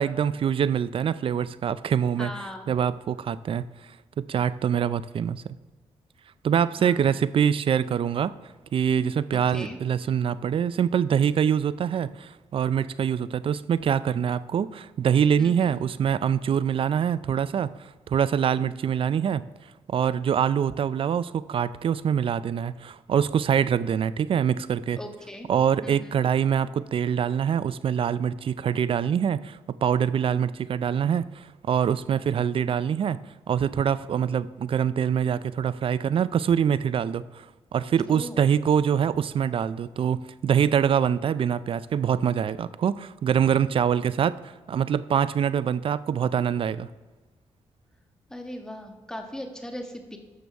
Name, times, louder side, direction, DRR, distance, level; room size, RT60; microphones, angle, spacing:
voice 1, 0.0-2.3 2.7-3.7 4.2-5.5 6.4-8.3 8.7-17.7 18.1-19.4 19.9-25.0 25.5-33.2 33.5-37.5 37.7-44.4 44.7-46.9, right 8 dB, 55° right, 16 dB, 0.4 m, -24 dB
voice 2, 2.2-2.7 6.8-7.1 9.5-9.8 15.4-15.7 25.0-25.5 25.8-26.2 38.1-38.4 48.3-50.2, left 1 dB, 5° left, 3 dB, 1.3 m, -38 dB
12.5 x 6.8 x 3.5 m, 1.3 s
cardioid pair, 75°, 11 cm